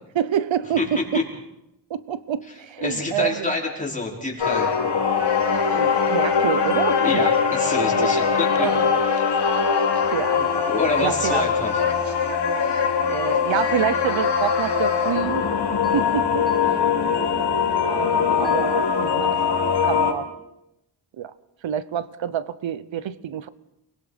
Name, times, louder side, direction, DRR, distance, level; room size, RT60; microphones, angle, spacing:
voice 1, 0.1-1.2 1.9-3.5 5.4-7.2 7.9-8.1 8.6-9.0 9.7-9.8 10.1-10.6 11.0-11.4 12.6-15.4 15.9-16.5 17.8-19.4 19.8-20.3 21.2-21.3 21.6-23.5, right 9 dB, 90° right, 16 dB, 0.9 m, -27 dB
voice 2, 2.8-4.9 7.0-8.7 9.1-9.5 10.7-11.8, left 3 dB, 15° left, -2 dB, 5.1 m, -27 dB
sound 1, 4.4-20.1, left 6 dB, 65° left, 3.0 m, -22 dB
30.0 x 21.0 x 5.1 m, 0.86 s
wide cardioid pair, 140°, 44 cm